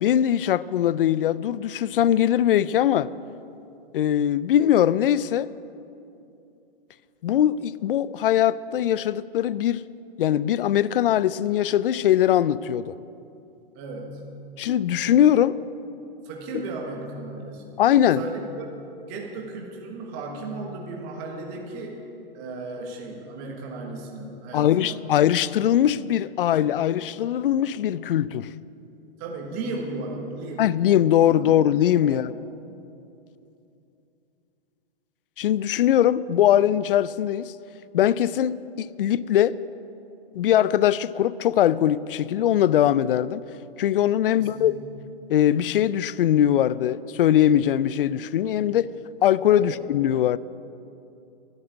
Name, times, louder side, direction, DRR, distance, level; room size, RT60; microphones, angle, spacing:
voice 1, 0.0-3.1 3.9-5.5 7.2-9.8 10.2-12.9 14.6-15.6 17.8-18.2 24.5-28.5 30.6-32.3 35.4-37.5 37.9-39.6 40.3-43.4 43.8-44.7 45.3-48.9 49.2-50.4, left 11 dB, 60° left, 0.4 m, -21 dB
voice 2, 13.7-14.2 16.2-18.7 19.1-22.0 22.3-25.1 29.2-30.7 31.3-31.5 32.0-32.4 44.3-44.8 49.6-49.8, right 3 dB, 20° right, 1.4 m, -35 dB
11.5 x 7.8 x 9.8 m
hypercardioid pair, 170°, 31 cm